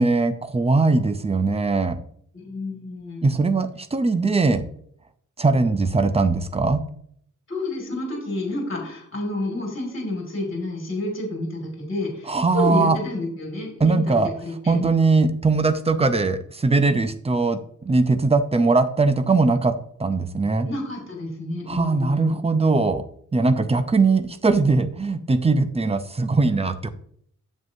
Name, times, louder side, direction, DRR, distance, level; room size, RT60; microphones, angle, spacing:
voice 1, 0.0-2.0 3.2-4.6 5.4-6.8 12.3-13.0 13.8-14.3 14.7-20.7 21.7-23.0 23.3-26.9, right 3 dB, 20° right, 10 dB, 0.5 m, -20 dB
voice 2, 2.3-3.3 7.5-14.8 20.6-22.4, left 2 dB, 40° left, -1 dB, 2.1 m, -30 dB
7.9 x 7.4 x 2.7 m, 0.64 s
wide cardioid pair, 165°, 31 cm